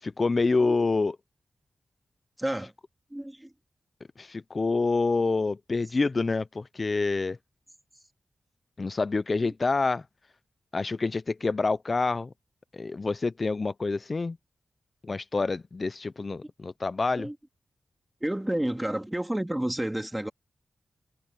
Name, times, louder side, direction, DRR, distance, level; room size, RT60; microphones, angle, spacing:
voice 1, 0.0-1.2 4.2-7.4 8.8-10.0 10.7-12.3 12.7-14.4 15.0-17.3, left 3 dB, 35° left, 0.3 m, -27 dB
voice 2, 2.4-2.7 3.1-3.5 9.4-9.5 17.1-17.4 18.2-20.3, right 1 dB, 10° right, 1.9 m, -30 dB
wide cardioid pair, 125°, 0 cm